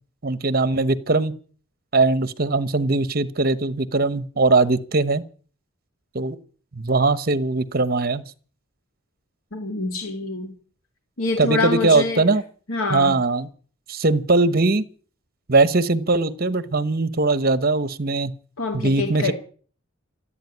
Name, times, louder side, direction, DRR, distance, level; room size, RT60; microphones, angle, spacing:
voice 1, 0.2-1.4 1.9-5.3 6.1-6.4 6.7-8.2 11.4-12.4 12.9-13.5 13.9-14.8 15.5-18.3 18.7-19.3, right 3 dB, 45° right, 14 dB, 1.0 m, -20 dB
voice 2, 9.5-10.5 11.2-12.3 12.7-13.2 18.6-19.3, left 3 dB, 85° left, 4 dB, 2.5 m, -25 dB
15.5 x 8.7 x 9.7 m, 0.43 s
head